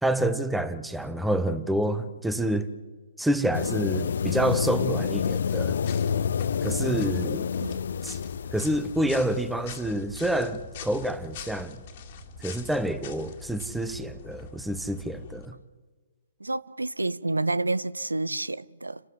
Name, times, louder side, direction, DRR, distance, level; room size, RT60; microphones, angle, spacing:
voice 1, 0.0-2.7 3.2-5.8 6.6-7.5 8.0-8.2 8.5-11.8 12.4-15.6, right 1 dB, 5° right, 1.1 m, -28 dB
sound 1, 3.5-9.5, left 7 dB, 60° left, 0.6 m, -28 dB
sound 2, 4.9-15.5, left 5 dB, 40° left, 2.2 m, -43 dB
voice 2, 16.4-19.0, right 2 dB, 80° right, 0.6 m, -29 dB
29.5 x 13.0 x 8.0 m
figure-of-eight pair, 125°, 0 cm